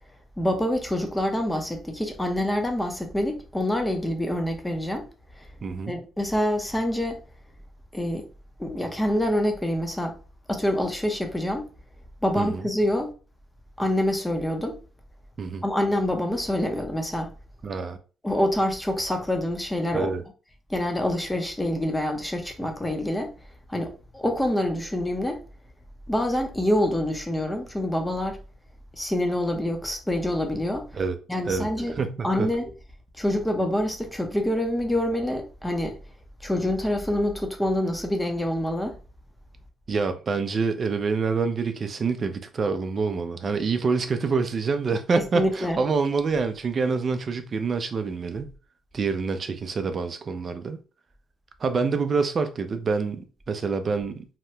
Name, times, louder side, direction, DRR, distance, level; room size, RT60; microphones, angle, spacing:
voice 1, 0.4-5.1 5.4-5.5 5.9-7.2 7.9-8.3 8.6-10.2 10.5-11.7 12.2-13.1 13.8-14.8 15.6-17.3 18.2-20.1 20.7-23.3 23.7-25.4 26.1-28.4 28.9-30.9 31.3-31.9 32.2-32.7 33.2-36.0 36.4-38.9 45.3-45.8, left 1 dB, 10° left, 0.7 m, -26 dB
voice 2, 5.6-6.0 12.4-12.7 15.4-15.6 17.6-18.0 19.9-20.2 30.9-31.2 31.5-31.7 32.0-32.5 39.9-48.5 48.9-50.8 51.6-54.2, right 4 dB, 40° right, 0.4 m, -26 dB
2.8 x 2.2 x 3.2 m
cardioid pair, 105°, 0 cm